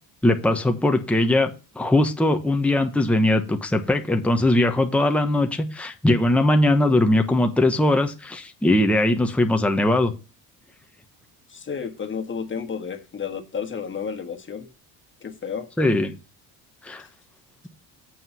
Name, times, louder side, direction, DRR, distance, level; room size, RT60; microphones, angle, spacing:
voice 1, 0.2-10.1 15.8-16.2 16.8-17.1, left 1 dB, 5° left, 1.1 m, -20 dB
voice 2, 11.5-14.7 15.2-15.7, left 6 dB, 30° left, 1.7 m, -31 dB
7.5 x 5.4 x 5.7 m
cardioid pair, 95°, 40 cm